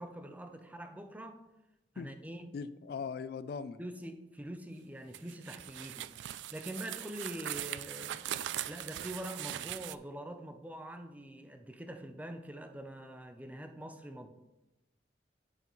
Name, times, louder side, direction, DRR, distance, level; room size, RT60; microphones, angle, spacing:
voice 1, 0.0-1.4 1.9-2.6 3.8-8.3 8.7-14.3, right 1 dB, 10° right, 7 dB, 0.5 m, -44 dB
voice 2, 2.5-3.8, left 5 dB, 60° left, 14 dB, 0.3 m, -40 dB
sound 1, 5.1-10.0, right 12 dB, 85° right, 0.3 m, -40 dB
8.3 x 7.0 x 3.1 m, 0.98 s
head